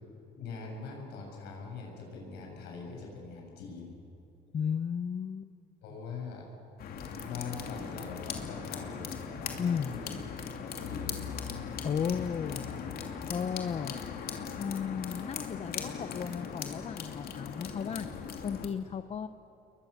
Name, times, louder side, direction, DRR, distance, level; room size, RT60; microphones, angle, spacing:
voice 1, 0.4-3.9 5.8-6.5 7.2-10.2 10.6-11.3, left 4 dB, 85° left, 0 dB, 7.6 m, -42 dB
voice 2, 4.5-5.5 9.6-9.9 11.8-12.7 13.3-14.0 14.6-18.1 18.4-19.3, left 7 dB, 40° left, 11 dB, 0.8 m, -34 dB
sound 1, 6.8-18.7, left 6 dB, 65° left, 2.7 m, -39 dB
29.0 x 22.5 x 7.1 m, 2.8 s
cardioid pair, 110°, 17 cm